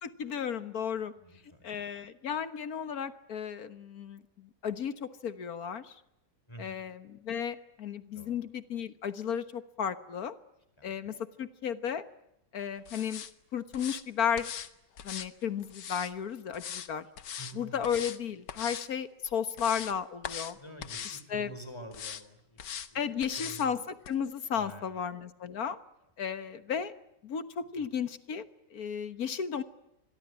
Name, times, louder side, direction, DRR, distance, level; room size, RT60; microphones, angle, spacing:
voice 1, 0.0-1.1 1.6-5.9 6.6-10.4 10.8-12.0 12.5-13.2 13.5-14.5 15.0-17.0 17.5-20.6 21.0-21.5 22.9-25.8 26.2-26.9 27.2-28.4 28.7-29.6, left 7 dB, 60° left, 12 dB, 1.7 m, -34 dB
voice 2, 1.2-1.7 6.5-6.8 8.1-8.4 10.8-10.9 17.4-17.8 20.5-22.6 22.9-23.0 23.4-23.8 24.5-25.0 27.8-27.9, equal, 15° left, 9 dB, 4.7 m, -47 dB
sound 1, 12.9-13.3 13.7-14.0 14.4-14.7 15.0-16.1 16.5-16.9 17.2-17.5 17.8-18.2 18.5-18.9 19.3-19.9 20.2-20.5 20.8-21.2 21.9-22.2 22.6-22.9 23.2-23.7 24.0-24.1, left 8 dB, 80° left, 1.9 m, -40 dB
26.0 x 22.0 x 9.8 m, 0.83 s
omnidirectional pair, 1.8 m